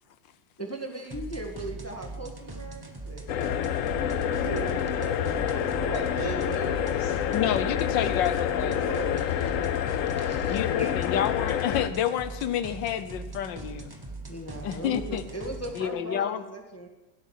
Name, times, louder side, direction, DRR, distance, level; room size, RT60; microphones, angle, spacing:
voice 1, 0.6-4.8 9.1-9.6 9.9-11.2 14.3-16.9, right 1 dB, 10° left, 3 dB, 1.3 m, -40 dB
sound 1, 1.1-15.9, right 3 dB, 15° right, 0.9 m, -41 dB
sound 2, 3.3-11.9, left 9 dB, 65° left, 0.8 m, -28 dB
voice 2, 4.4-7.6 8.9-9.1, right 2 dB, 60° right, -1 dB, 3.4 m, -37 dB
voice 3, 7.3-8.8 10.5-13.9 14.6-15.2 15.8-16.4, left 9 dB, 85° left, 12 dB, 1.5 m, -29 dB
17.0 x 8.4 x 7.3 m, 1.1 s
omnidirectional pair, 1.9 m